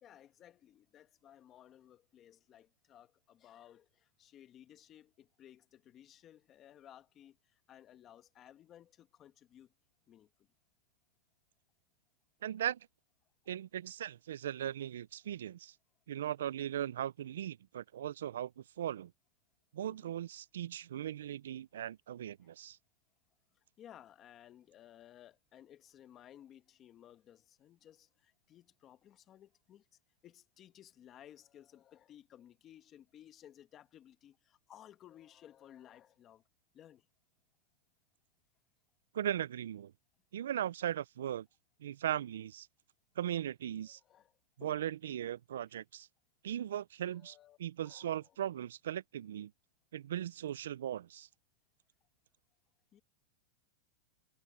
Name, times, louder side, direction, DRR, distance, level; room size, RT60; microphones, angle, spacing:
voice 1, 0.0-9.7 10.1-10.3 19.9-20.2 22.4-22.5 23.8-29.8 30.2-36.4 36.7-37.0 43.8-44.3 44.6-44.8 47.0-48.4 50.4-50.5 52.9-53.0, left 11 dB, 30° left, 1.5 m, -58 dB
voice 2, 12.4-12.8 13.5-15.7 16.1-18.5 18.8-19.1 19.7-22.8 39.1-39.9 40.3-41.5 41.8-42.7 43.2-44.0 44.6-46.1 46.4-47.3 47.6-49.5 49.9-51.3, right 11 dB, 85° right, 0.3 m, -38 dB
supercardioid pair, 140°, 0 cm